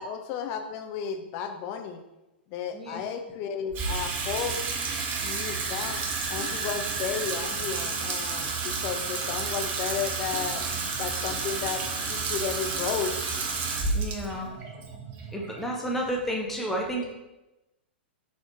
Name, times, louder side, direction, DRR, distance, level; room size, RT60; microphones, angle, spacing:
voice 1, 0.0-2.0 2.5-4.6 5.2-6.0 6.3-10.6 11.0-13.1, left 7 dB, 40° left, 6 dB, 0.5 m, -33 dB
voice 2, 2.7-3.0 13.9-14.5 15.3-17.1, right 1 dB, 5° left, -1 dB, 0.8 m, -31 dB
Water tap faucet / Sink (filling or washing), 3.7-16.1, right 4 dB, 30° right, 0.8 m, -31 dB
4.2 x 2.9 x 3.9 m, 1.0 s
figure-of-eight pair, 110°, 6 cm